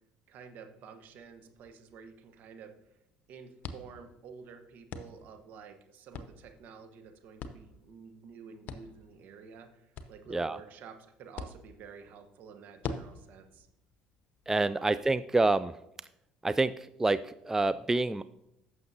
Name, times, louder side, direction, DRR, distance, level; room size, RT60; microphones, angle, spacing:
voice 1, 0.3-2.7 3.3-13.7 14.5-14.9, right 6 dB, 60° right, 6 dB, 1.2 m, -50 dB
sound 1, 1.0-15.1, left 4 dB, 55° left, 0.7 m, -47 dB
voice 2, 14.5-15.7 16.4-16.7 17.0-18.2, right 2 dB, 15° right, 14 dB, 0.3 m, -27 dB
15.0 x 6.4 x 2.8 m, 0.84 s
hypercardioid pair, 60°, 3 cm